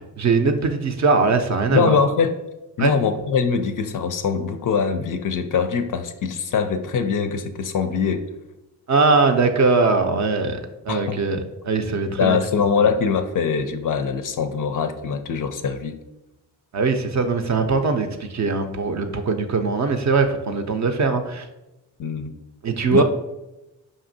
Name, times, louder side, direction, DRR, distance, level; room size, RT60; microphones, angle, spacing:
voice 1, 0.2-2.0 2.8-2.9 8.9-10.6 10.9-12.4 16.7-21.5 22.6-23.0, right 4 dB, 40° right, 6 dB, 0.5 m, -21 dB
voice 2, 1.7-2.4 2.8-8.2 10.9-11.2 12.2-16.0 22.0-22.4 22.9-23.0, left 6 dB, 45° left, 8 dB, 0.4 m, -22 dB
5.0 x 2.7 x 2.6 m, 0.97 s
hypercardioid pair, 40°, 46 cm